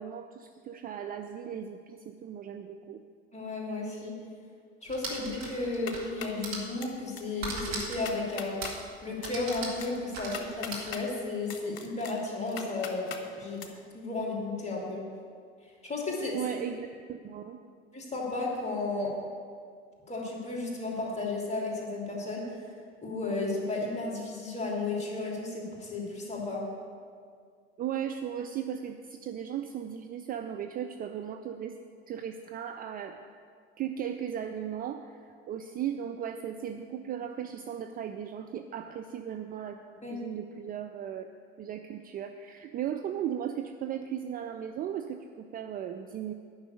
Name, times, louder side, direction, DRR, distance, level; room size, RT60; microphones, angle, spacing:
voice 1, 0.0-3.0 16.3-17.6 27.8-31.8 32.1-33.2 33.8-41.3 41.6-46.3, right 9 dB, 25° right, 6 dB, 0.5 m, -37 dB
voice 2, 3.3-4.1 4.8-8.6 9.0-13.7 13.9-15.0 15.8-16.4 17.9-19.1 20.1-22.4 23.0-26.6 40.0-40.2, left 3 dB, 20° left, -2 dB, 3.1 m, -33 dB
sound 1, 4.9-6.1 6.4-6.7 7.4-8.1 8.6-8.9 9.2-10.9, right 2 dB, 65° right, 2.3 m, -38 dB
sound 2, 5.6-6.4 6.8-7.2 7.5-7.6 7.9-8.7 9.2-11.0 11.5-13.2 13.6-13.7, left 7 dB, 60° left, 1.2 m, -41 dB
10.5 x 6.0 x 8.4 m, 2.1 s
figure-of-eight pair, 70°, 32 cm